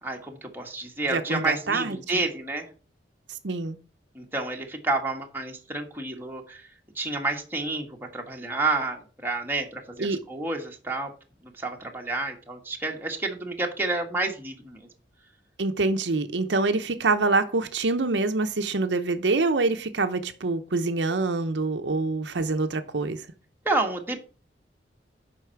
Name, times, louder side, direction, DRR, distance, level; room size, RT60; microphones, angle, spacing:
voice 1, 0.0-2.7 4.1-6.7 6.9-11.1 11.6-14.8 23.6-24.3, right 2 dB, 10° right, 1.5 m, -30 dB
voice 2, 1.1-2.2 3.4-3.8 10.0-10.2 15.6-23.3, right 3 dB, 70° right, 0.7 m, -25 dB
8.2 x 5.5 x 5.8 m
head